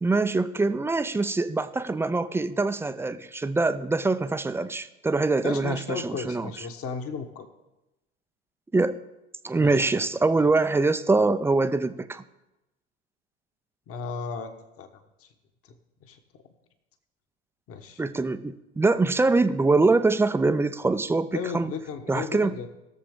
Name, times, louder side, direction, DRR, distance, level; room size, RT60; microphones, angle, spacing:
voice 1, 0.0-6.5 8.7-9.0 9.4-12.2 18.0-21.7 22.1-22.6, right 3 dB, 5° right, 11 dB, 0.4 m, -24 dB
voice 2, 5.4-7.5 9.6-9.8 13.9-14.5 14.8-14.9 15.2-15.3 15.6-15.7 16.0-16.2 17.7-18.0 21.3-22.7, left 5 dB, 40° left, 6 dB, 1.3 m, -35 dB
20.0 x 6.8 x 3.7 m, 0.99 s
hypercardioid pair, 85°, 35 cm